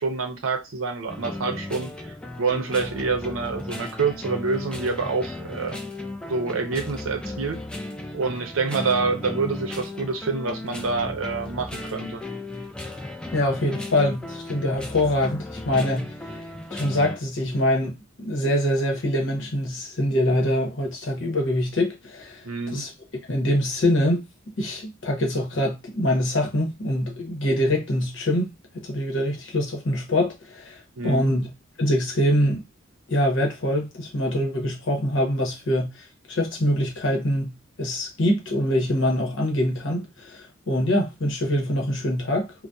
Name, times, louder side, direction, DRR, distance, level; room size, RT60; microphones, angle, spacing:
voice 1, 0.0-5.8 6.3-7.6 8.1-12.2 22.4-22.9 31.0-31.4, right 4 dB, 85° right, 0.6 m, -27 dB
sound 1, 1.1-17.2, left 2 dB, 5° left, 0.3 m, -35 dB
voice 2, 13.3-16.4 16.7-22.9 23.3-24.2 24.6-31.5 31.8-32.6 33.1-42.5, left 1 dB, 65° left, 0.9 m, -24 dB
2.6 x 2.1 x 2.2 m
head